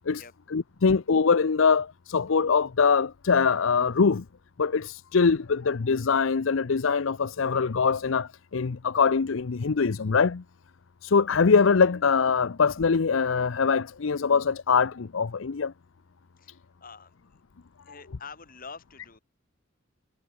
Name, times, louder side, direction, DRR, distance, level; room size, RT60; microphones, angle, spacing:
voice 1, 0.5-4.2 4.6-10.4 11.0-15.7, left 5 dB, 70° left, 0.6 m, -23 dB
voice 2, 16.4-17.4 17.8-19.2, left 5 dB, 45° left, 4.3 m, -46 dB
head